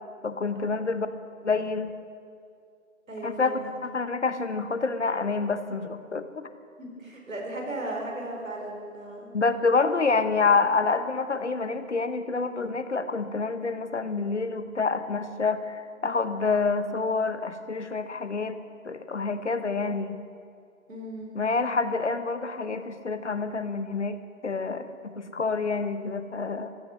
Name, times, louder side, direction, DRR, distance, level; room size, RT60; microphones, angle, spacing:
voice 1, 0.2-1.1 1.4-1.9 3.2-6.4 9.3-18.6 18.8-20.2 21.3-26.7, left 4 dB, 55° left, 11 dB, 1.0 m, -27 dB
voice 2, 3.1-3.7 6.8-9.3 20.9-21.3, right 1 dB, 70° right, 0 dB, 4.7 m, -36 dB
15.0 x 14.0 x 6.2 m, 2.4 s
figure-of-eight pair, 170°, 42 cm